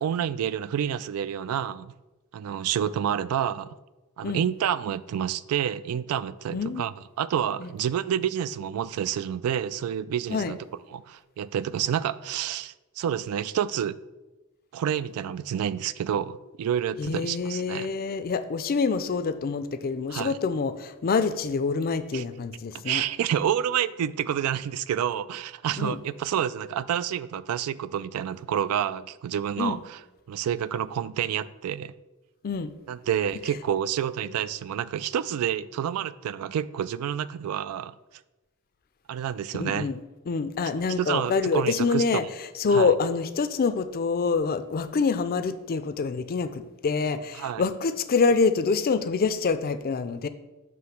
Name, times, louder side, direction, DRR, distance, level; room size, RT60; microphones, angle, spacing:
voice 1, 0.0-1.9 2.3-3.8 4.2-6.9 7.2-10.6 10.9-14.0 14.7-17.9 20.1-20.4 22.1-22.2 22.7-30.0 30.3-31.9 32.9-37.9 39.1-39.9 41.0-42.2 42.7-42.9 47.4-47.6, right 9 dB, 80° right, 0.3 m, -28 dB
voice 2, 6.5-6.8 7.6-7.7 10.3-10.5 17.0-23.0 25.8-26.0 29.6-29.8 32.4-32.7 39.5-40.0 40.3-42.2 42.6-50.3, left 4 dB, 45° left, 0.4 m, -26 dB
7.7 x 3.1 x 5.7 m
head